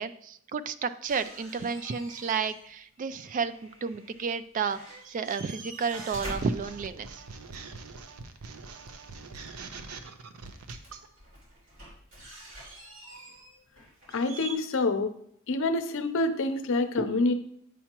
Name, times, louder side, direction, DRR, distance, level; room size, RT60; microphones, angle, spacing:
voice 1, 0.0-4.8 5.1-7.2, right 5 dB, 40° right, 13 dB, 0.3 m, -32 dB
sound 1, 1.1-2.7 3.0-4.4 4.6-7.4 9.7-9.8 10.5-14.5, right 2 dB, 65° right, 2.7 m, -46 dB
sound 2, 5.9-11.1, right 4 dB, 90° right, 0.6 m, -43 dB
voice 2, 14.1-15.1 15.5-17.3, left 2 dB, 65° left, 8 dB, 0.6 m, -27 dB
8.3 x 5.6 x 2.9 m, 0.68 s
head